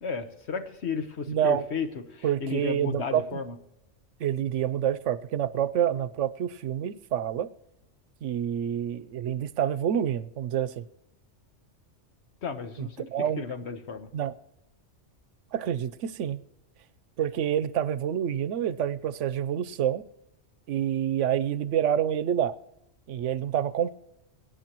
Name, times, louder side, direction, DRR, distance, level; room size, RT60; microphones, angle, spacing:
voice 1, 0.0-3.5 12.4-14.1, left 5 dB, 65° left, 8 dB, 1.4 m, -34 dB
voice 2, 1.3-1.6 2.2-3.4 4.2-7.5 8.2-10.8 12.8-13.4 14.1-14.3 15.5-16.4 17.2-20.0 20.7-22.5 23.1-23.9, right 10 dB, 85° right, 16 dB, 1.0 m, -27 dB
23.5 x 9.5 x 3.0 m, 0.87 s
omnidirectional pair, 1.2 m